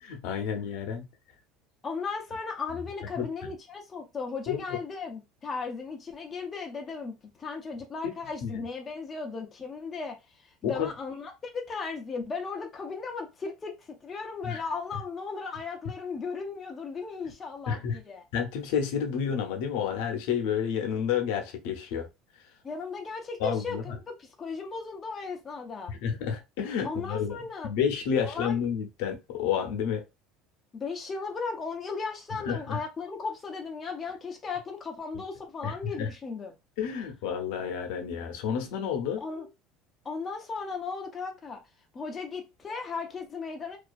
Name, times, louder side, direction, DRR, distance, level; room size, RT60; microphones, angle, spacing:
voice 1, 0.0-1.1 3.2-3.3 4.5-4.6 8.0-8.1 8.4-8.6 10.6-10.9 14.4-14.6 17.7-18.0 18.3-22.1 23.4-24.0 25.9-27.4 27.6-30.1 32.5-32.8 35.6-36.1 36.8-39.2, left 7 dB, 70° left, 0.5 m, -30 dB
voice 2, 1.8-18.3 22.6-25.9 26.8-27.7 28.2-28.6 30.7-36.5 39.2-39.5 40.0-41.6 41.9-43.8, left 4 dB, 20° left, 0.4 m, -36 dB
2.3 x 2.3 x 2.5 m
cardioid pair, 175°, 0 cm